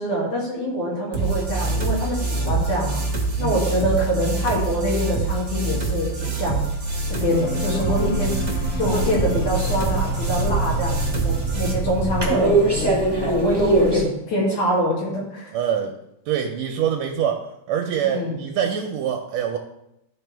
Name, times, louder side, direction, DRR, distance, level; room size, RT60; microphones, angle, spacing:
voice 1, 0.0-3.0 3.4-6.6 7.1-8.4 8.8-13.0 13.3-15.5 18.0-18.3, equal, 75° left, -5 dB, 4.0 m, -24 dB
sound 1, 1.1-11.7, right 3 dB, 50° right, 0.8 m, -26 dB
sound 2, 7.3-14.3, right 1 dB, 55° left, 2.7 m, -34 dB
sound 3, 7.9-14.0, right 3 dB, 20° right, 0.7 m, -24 dB
voice 2, 15.5-16.0 16.3-19.6, right 8 dB, 80° right, 3 dB, 1.8 m, -25 dB
12.5 x 4.5 x 3.4 m, 0.83 s
omnidirectional pair, 3.4 m